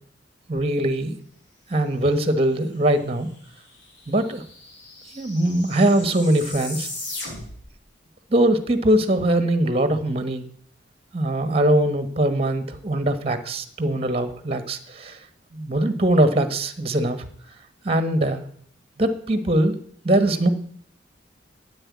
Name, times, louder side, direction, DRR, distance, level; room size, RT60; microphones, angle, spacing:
voice 1, 0.5-1.2 1.7-3.3 4.1-4.4 5.1-6.9 8.3-10.4 11.1-15.2 15.5-17.3 17.8-18.4 19.0-19.8 20.0-20.5, right 1 dB, 30° right, 10 dB, 1.2 m, -21 dB
sound 1, 3.2-3.3 3.5-7.7, left 2 dB, 75° left, 4.8 m, -37 dB
10.0 x 8.8 x 8.5 m, 0.62 s
head